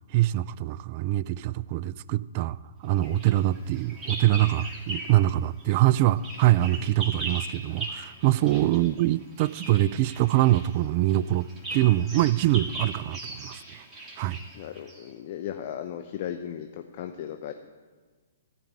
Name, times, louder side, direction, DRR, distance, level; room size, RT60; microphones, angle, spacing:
voice 1, 0.1-2.6 2.8-13.8 14.2-14.4, right 15 dB, 40° right, 0.3 m, -24 dB
Bird vocalization bird call bird song, 3.0-5.3 5.6-15.1, right 2 dB, 15° right, 2.0 m, -39 dB
voice 2, 14.5-17.5, left 10 dB, 45° left, 0.7 m, -36 dB
13.5 x 5.2 x 8.5 m
hypercardioid pair, 125°, 0 cm